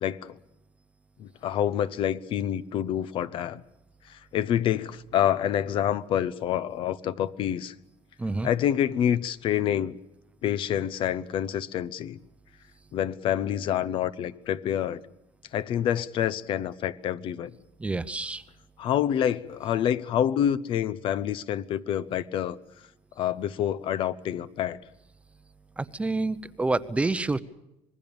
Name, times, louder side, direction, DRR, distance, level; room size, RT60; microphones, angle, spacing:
voice 1, 0.0-0.4 1.2-3.6 4.1-7.7 8.4-10.0 10.4-12.2 12.9-15.0 15.5-17.5 18.8-22.6 23.2-24.8, left 10 dB, 60° left, 0.9 m, -27 dB
voice 2, 8.2-8.5 17.8-18.4 25.8-27.4, right 3 dB, 10° right, 0.8 m, -28 dB
26.5 x 20.5 x 7.1 m
cardioid pair, 145°, 10 cm